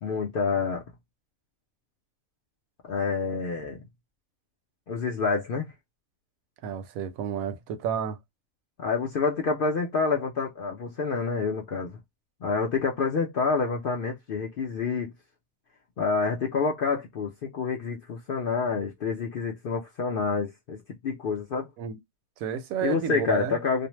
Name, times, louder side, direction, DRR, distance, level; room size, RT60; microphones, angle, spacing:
voice 1, 0.0-0.8 2.9-3.8 4.9-5.7 8.8-12.0 12.4-15.1 16.0-20.8 21.0-21.7 22.8-23.9, left 4 dB, 65° left, 0.5 m, -28 dB
voice 2, 6.6-8.2 21.8-22.0 22.4-23.6, right 8 dB, 90° right, 1.0 m, -31 dB
2.5 x 2.0 x 3.0 m
omnidirectional pair, 1.4 m